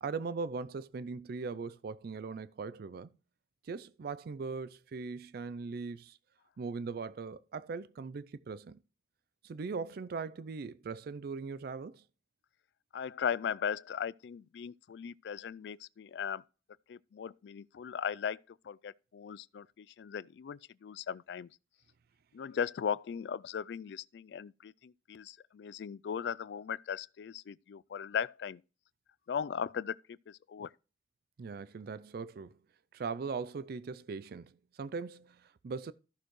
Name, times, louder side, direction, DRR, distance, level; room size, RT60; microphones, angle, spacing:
voice 1, 0.0-3.1 3.6-6.2 6.6-8.8 9.4-12.0 31.4-32.6 32.9-35.9, right 4 dB, 55° right, 0.4 m, -40 dB
voice 2, 12.9-16.4 16.9-18.4 18.7-21.5 22.3-28.6 29.3-30.0 30.5-30.7, left 7 dB, 70° left, 0.3 m, -38 dB
14.0 x 6.5 x 3.1 m
head